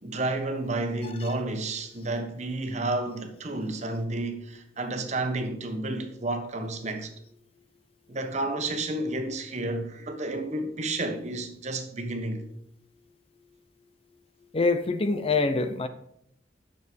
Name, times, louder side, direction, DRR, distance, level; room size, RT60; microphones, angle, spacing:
voice 1, 0.0-7.1 8.1-12.4, right 2 dB, 40° right, 1.4 m, -31 dB
voice 2, 14.5-15.9, left 3 dB, 35° left, 0.6 m, -25 dB
9.8 x 6.8 x 5.1 m
head